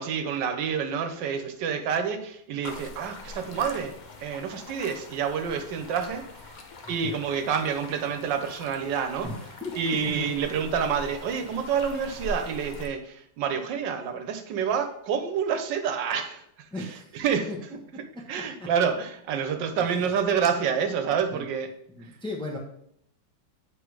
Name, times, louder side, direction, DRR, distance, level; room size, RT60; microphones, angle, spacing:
voice 1, 0.0-3.9 4.2-6.6 6.9-9.3 9.7-16.4 16.8-17.5 18.3-21.7, right 7 dB, 80° right, 8 dB, 1.4 m, -28 dB
sound 1, 2.6-12.9, left 2 dB, 80° left, 0.4 m, -43 dB
voice 2, 9.2-10.3 16.7-17.1 17.5-17.6 18.6-18.7 19.8-19.9 21.3-21.4 22.0-22.6, left 2 dB, 5° left, 0 dB, 0.7 m, -36 dB
8.1 x 3.7 x 4.7 m, 0.71 s
omnidirectional pair, 1.9 m